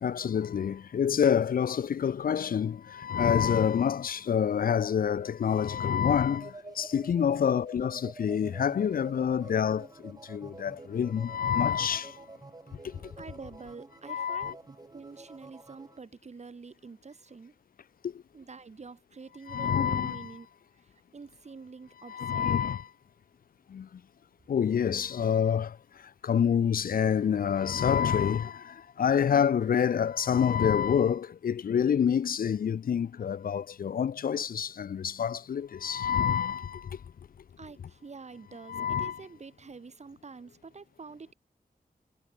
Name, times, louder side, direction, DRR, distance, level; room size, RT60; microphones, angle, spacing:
voice 1, 0.0-12.2 12.8-13.0 14.1-14.5 18.0-18.1 19.5-20.3 22.1-22.9 23.7-23.9 24.5-25.8 26.2-37.0 38.7-39.2, left 8 dB, 75° left, 0.6 m, -27 dB
sound 1, 6.2-16.0, right 2 dB, 25° right, 2.6 m, -49 dB
voice 2, 13.2-14.6 14.9-17.5 18.3-20.5 20.8-22.5 37.6-41.3, right 4 dB, 50° right, 6.7 m, -47 dB
wide cardioid pair, 125°, 15 cm